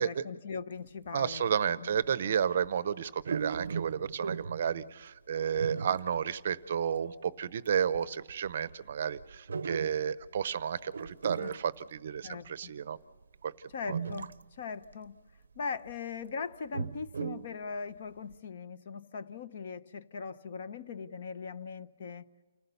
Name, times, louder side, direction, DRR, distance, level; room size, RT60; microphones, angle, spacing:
voice 1, 0.0-1.5 1.8-1.9 2.2-2.4 11.3-11.6 12.2-12.7 13.7-15.2 15.6-22.3, left 5 dB, 40° left, 12 dB, 0.7 m, -40 dB
voice 2, 1.1-13.0 13.4-13.5 13.9-14.0, right 8 dB, 40° right, 17 dB, 0.6 m, -32 dB
sound 1, 1.1-1.2 1.9-2.1 2.4-2.7 3.2-4.8 5.5-6.4 6.8-6.9 7.6-7.7 7.9-10.6 10.9-12.5 13.2-13.3 13.9-14.6 14.9-15.0 15.6-16.0 16.5-17.6 18.0-18.1 18.3-18.4, right 5 dB, 85° right, 0.6 m, -38 dB
29.0 x 15.5 x 6.9 m, 1.2 s
hypercardioid pair, 175°, 0 cm